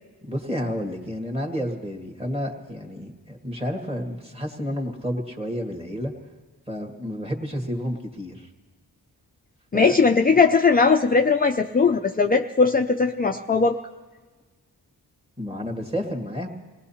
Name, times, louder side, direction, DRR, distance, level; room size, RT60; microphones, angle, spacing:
voice 1, 0.2-6.1 6.7-8.5 9.7-9.9 15.4-16.5, equal, 15° right, 1 dB, 1.9 m, -30 dB
voice 2, 9.7-13.8, left 4 dB, 25° left, 4 dB, 0.4 m, -19 dB
27.0 x 18.5 x 2.9 m, 1.3 s
wide cardioid pair, 75°, 40 cm